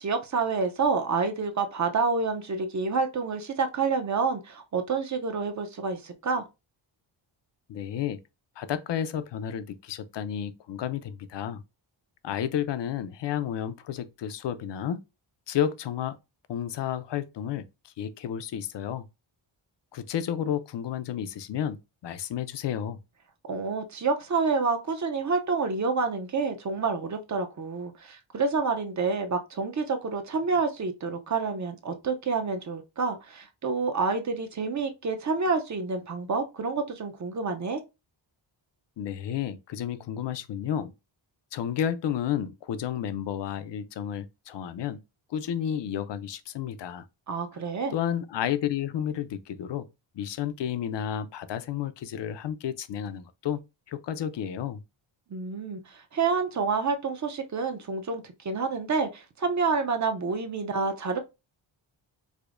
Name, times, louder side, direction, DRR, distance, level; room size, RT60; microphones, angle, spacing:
voice 1, 0.0-6.4 23.4-37.8 47.3-48.0 55.3-61.2, right 4 dB, 35° right, 0.5 m, -28 dB
voice 2, 7.7-8.2 8.6-11.6 12.2-15.0 15.5-16.2 16.5-17.6 18.0-19.1 19.9-23.0 39.0-40.9 41.5-45.0 45.3-47.1 47.9-49.9 50.2-53.6 53.9-54.8, left 9 dB, 60° left, 0.5 m, -31 dB
4.9 x 2.0 x 2.4 m
wide cardioid pair, 115°, 49 cm